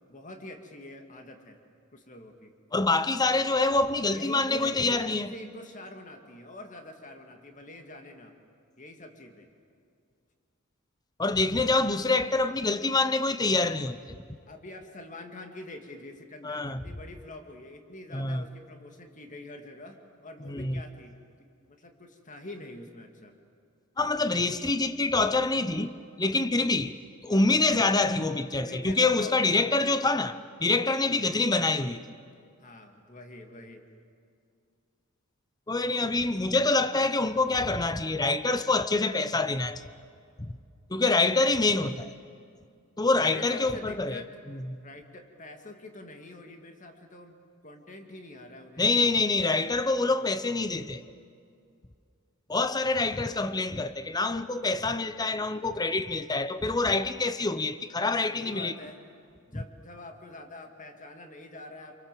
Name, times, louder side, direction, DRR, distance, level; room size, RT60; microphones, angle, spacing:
voice 1, 0.1-1.6 1.9-2.5 4.1-8.3 8.8-9.5 14.5-23.3 28.5-30.1 31.1-31.3 32.6-33.9 43.2-49.2 58.3-59.0 59.5-62.0, left 1 dB, 35° left, 2.3 m, -45 dB
voice 2, 2.7-5.3 11.2-14.2 16.4-16.8 18.1-18.4 20.4-20.8 24.0-27.0 27.2-30.3 30.6-32.2 35.7-39.8 40.9-42.1 43.0-44.2 44.7-44.8 48.8-51.0 52.5-58.7, left 3 dB, 20° left, 0.8 m, -26 dB
28.5 x 23.5 x 7.7 m
head